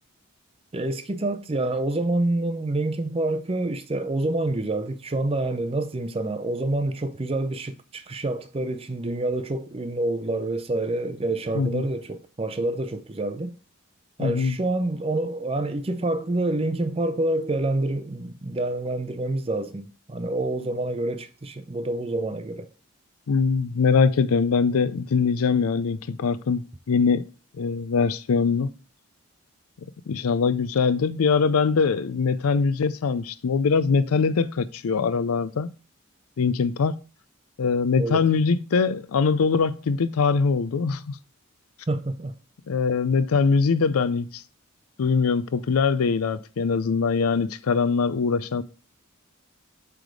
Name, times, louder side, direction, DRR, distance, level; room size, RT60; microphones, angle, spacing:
voice 1, 0.7-13.5 14.2-22.7 38.0-38.2 41.9-42.3, right 2 dB, 25° right, 0.5 m, -27 dB
voice 2, 14.2-14.6 23.3-27.2 27.6-28.7 30.1-35.7 36.4-37.0 37.6-41.2 42.7-44.4 45.0-48.6, left 5 dB, 90° left, 0.4 m, -22 dB
7.6 x 3.5 x 4.7 m
head